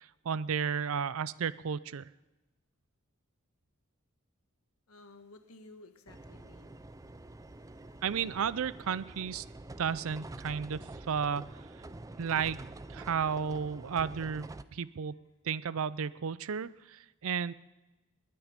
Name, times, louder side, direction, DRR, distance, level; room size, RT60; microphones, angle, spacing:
voice 1, 0.0-2.1 8.0-9.4 9.8-11.4 12.2-12.6 12.9-15.2 15.4-17.5, right 7 dB, 70° right, 18 dB, 0.5 m, -33 dB
voice 2, 4.9-8.0 11.9-12.0, left 2 dB, 90° left, 8 dB, 1.4 m, -56 dB
sound 1, 6.1-14.6, right 2 dB, 15° right, 0.4 m, -47 dB
21.0 x 9.5 x 5.1 m, 1.1 s
head